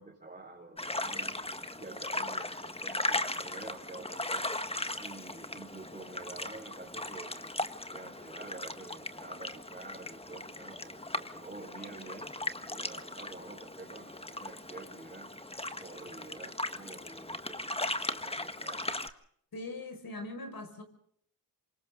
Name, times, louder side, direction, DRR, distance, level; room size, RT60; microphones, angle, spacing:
voice 1, 0.0-1.4 1.7-4.5 5.0-7.6 7.9-15.3 15.8-18.9, right 3 dB, 20° right, 4.6 m, -48 dB
sound 1, 0.8-19.1, left 1 dB, 15° left, 1.5 m, -38 dB
voice 2, 19.5-20.8, left 2 dB, 60° left, 5.7 m, -41 dB
28.0 x 25.5 x 3.8 m
wide cardioid pair, 80°, 39 cm